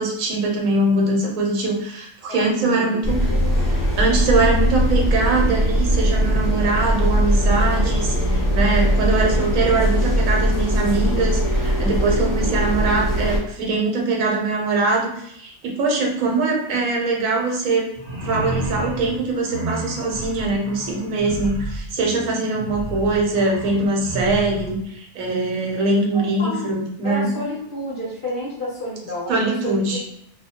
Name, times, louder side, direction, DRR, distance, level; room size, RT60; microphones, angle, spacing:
voice 1, 0.0-3.3 4.0-17.8 18.2-27.3 29.3-30.0, right 3 dB, 85° right, -1 dB, 1.1 m, -22 dB
voice 2, 2.3-3.3 26.1-26.7 27.0-29.3 29.6-30.0, left 1 dB, 55° left, -5 dB, 0.6 m, -30 dB
sound 1, 3.0-13.4, equal, 20° left, 0.9 m, -20 dB
sound 2, 17.9-24.8, right 1 dB, 50° right, 0.5 m, -31 dB
2.3 x 2.0 x 2.7 m, 0.73 s
omnidirectional pair, 1.4 m